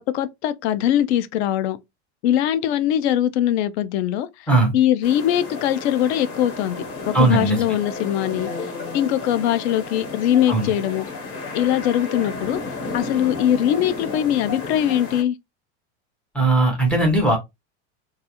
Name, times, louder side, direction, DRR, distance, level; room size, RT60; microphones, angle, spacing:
voice 1, 0.1-1.8 2.2-4.3 4.7-8.5 8.9-11.0 11.5-12.6 12.9-15.4, left 11 dB, 65° left, 0.5 m, -21 dB
sound 1, 5.0-15.2, left 3 dB, 40° left, 0.8 m, -33 dB
voice 2, 7.1-7.6 10.5-10.7 16.3-17.4, right 2 dB, 5° left, 0.4 m, -18 dB
2.3 x 2.3 x 2.7 m
supercardioid pair, 160°, 35 cm